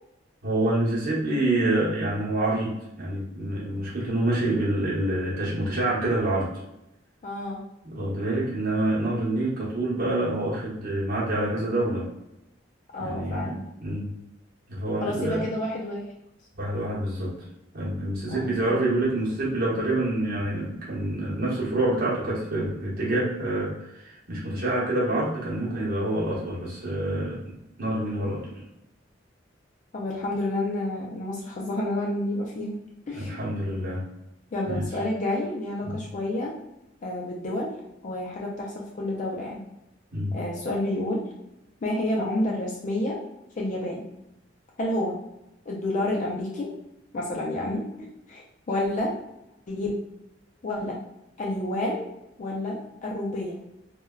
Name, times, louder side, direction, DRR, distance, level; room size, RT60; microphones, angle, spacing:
voice 1, 0.4-6.5 7.8-12.1 13.0-14.1 14.7-15.4 16.6-17.3 17.7-28.5 33.1-34.0 34.6-34.9 35.8-36.0 40.1-40.3, right 1 dB, 55° right, -6 dB, 1.0 m, -27 dB
voice 2, 7.2-7.6 12.9-13.6 15.0-16.0 18.3-18.8 29.9-32.8 33.1-33.4 34.5-36.5 37.0-37.7 38.0-39.6 40.3-41.3 41.8-43.2 43.6-44.1 44.8-45.2 45.7-46.7 47.1-47.9 48.3-49.1 49.7-50.0 50.6-51.0 51.4-52.0 52.4-53.6, left 1 dB, 40° left, -2 dB, 0.4 m, -29 dB
3.2 x 2.2 x 2.2 m, 0.87 s
head